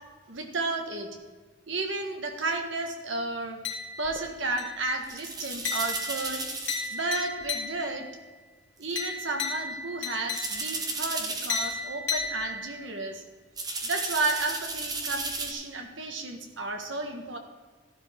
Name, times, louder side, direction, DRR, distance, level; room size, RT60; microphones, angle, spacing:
voice 1, 0.3-1.1 1.7-3.6 4.0-6.5 6.9-8.1 8.8-13.2 13.8-17.4, right 2 dB, 75° right, 4 dB, 1.6 m, -32 dB
sound 1, 3.6-4.2 4.6-5.0 5.6-8.1 9.0-10.9 11.5-12.9, left 4 dB, 70° left, 2.1 m, -34 dB
sound 2, 4.0-4.2 5.0-7.0 7.4-7.5 8.8-9.1 10.3-11.8 12.2-12.4 13.6-15.5, right 3 dB, 20° right, 1.1 m, -34 dB
13.5 x 11.5 x 3.6 m, 1.4 s
head